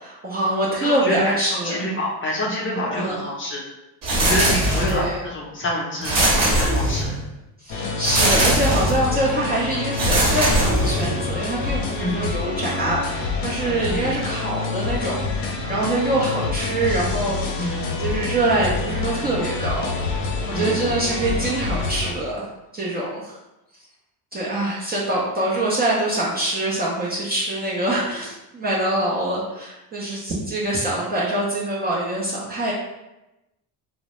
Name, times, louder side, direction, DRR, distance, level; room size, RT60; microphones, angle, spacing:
voice 1, 0.0-1.8 2.9-3.2 4.8-5.2 7.6-20.2 20.5-22.5 22.7-23.4 24.3-32.7, right 1 dB, 20° right, -5 dB, 0.5 m, -24 dB
voice 2, 0.8-3.6 4.2-7.2 12.0-12.3 13.9-14.1 17.6-17.9 20.5-20.8, left 1 dB, 25° left, -3 dB, 0.6 m, -27 dB
sound 1, 4.0-5.1 6.0-7.2 8.0-9.1 9.9-11.2, right 1 dB, 45° right, 0.9 m, -20 dB
sound 2, 7.7-22.1, left 3 dB, 75° left, 0.6 m, -27 dB
2.2 x 2.0 x 2.9 m, 0.96 s
supercardioid pair, 85°, 45 cm